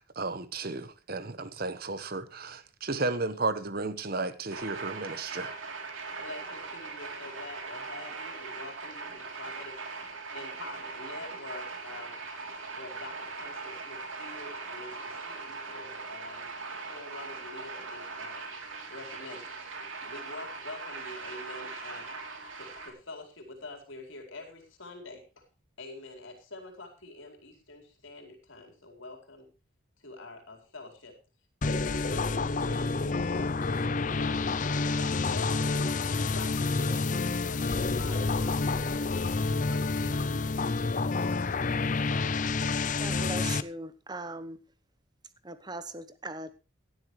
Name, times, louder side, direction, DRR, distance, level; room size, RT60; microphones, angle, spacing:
voice 1, 0.0-5.6, right 3 dB, 50° right, 1.2 m, -33 dB
sound 1, 4.5-22.9, right 4 dB, 75° right, 3.3 m, -40 dB
voice 2, 6.2-10.1 10.3-12.2 12.7-16.5 16.9-18.5 18.9-19.6 20.0-22.1 22.5-25.4 25.8-29.5 30.0-31.1 31.6-35.9 36.3-39.2 39.7-40.7, left 2 dB, 75° left, 4.6 m, -46 dB
sound 2, 31.6-43.6, left 3 dB, 40° left, 0.5 m, -29 dB
voice 3, 43.0-44.6 45.4-46.5, right 2 dB, 20° right, 1.0 m, -39 dB
17.5 x 12.0 x 3.2 m
head